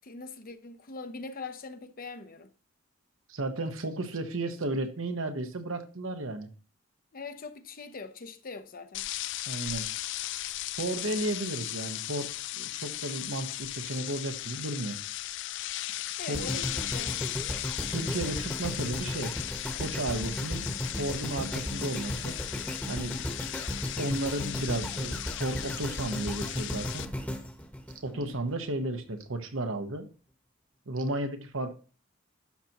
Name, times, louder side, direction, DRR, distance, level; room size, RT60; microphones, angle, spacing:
voice 1, 0.0-2.5 7.1-9.1 16.2-17.3 28.1-28.4, left 4 dB, 45° left, 0.7 m, -42 dB
voice 2, 3.3-6.5 9.5-9.9 10.8-12.3 12.6-15.0 16.3-16.5 17.9-19.3 19.8-20.7 21.0-22.4 22.9-23.3 24.0-27.1 28.0-30.1 30.9-31.7, right 2 dB, 80° right, 1.1 m, -33 dB
sound 1, 8.9-27.1, left 15 dB, 60° left, 0.3 m, -37 dB
sound 2, 16.3-28.5 29.1-29.2, equal, 5° left, 1.1 m, -35 dB
11.5 x 5.9 x 2.9 m
head